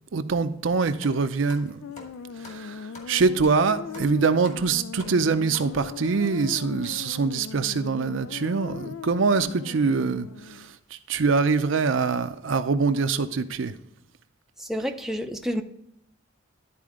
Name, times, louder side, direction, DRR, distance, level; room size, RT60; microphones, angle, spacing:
voice 1, 0.1-1.8 2.4-13.8, right 4 dB, 70° right, 0.5 m, -24 dB
sound 1, 1.0-6.1 6.8-7.0 7.7-7.8 8.0-8.2 9.2-9.4 9.8-9.9 10.5-10.6 11.0-11.2 11.6-11.8, left 2 dB, 35° left, 1.8 m, -48 dB
sound 2, 1.8-10.7, left 7 dB, 80° left, 0.3 m, -39 dB
voice 2, 14.6-15.6, equal, ahead, 0.5 m, -29 dB
12.0 x 4.3 x 3.6 m
head